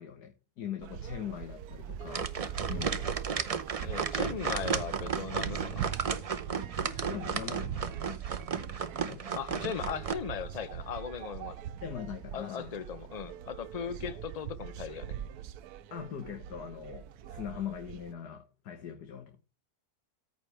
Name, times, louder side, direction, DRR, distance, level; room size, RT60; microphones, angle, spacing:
voice 1, 0.0-2.3 2.7-3.0 6.8-7.9 9.1-9.2 9.5-9.7 11.8-12.8 15.9-19.4, left 9 dB, 90° left, 1.8 m, -41 dB
sound 1, 0.8-18.1, right 9 dB, 75° right, 1.1 m, -41 dB
sound 2, 2.1-10.1, right 6 dB, 55° right, 0.3 m, -34 dB
voice 2, 3.8-5.9 9.4-11.6 12.3-15.1, left 7 dB, 55° left, 0.4 m, -38 dB
14.0 x 5.1 x 3.3 m
omnidirectional pair, 1.7 m